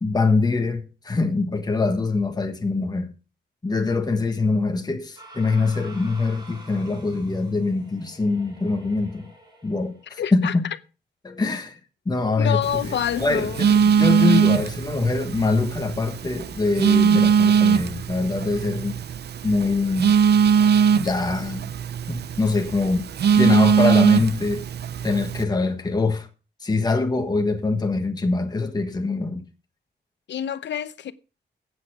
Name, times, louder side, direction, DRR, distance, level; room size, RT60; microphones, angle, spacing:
voice 1, 0.0-3.1 3.6-9.3 9.6-10.7 11.2-11.8 12.0-19.0 19.4-20.1 20.9-21.7 22.1-23.0 23.3-24.7 25.0-26.3 26.6-29.4, left 3 dB, 20° left, 1.6 m, -24 dB
sound 1, 5.2-10.2, right 1 dB, 25° right, 3.9 m, -47 dB
voice 2, 10.2-10.5 12.4-13.6 30.3-31.1, left 9 dB, 80° left, 0.8 m, -27 dB
Telephone, 12.6-25.4, right 7 dB, 65° right, 0.6 m, -21 dB
14.5 x 8.6 x 4.9 m
wide cardioid pair, 130°, 18 cm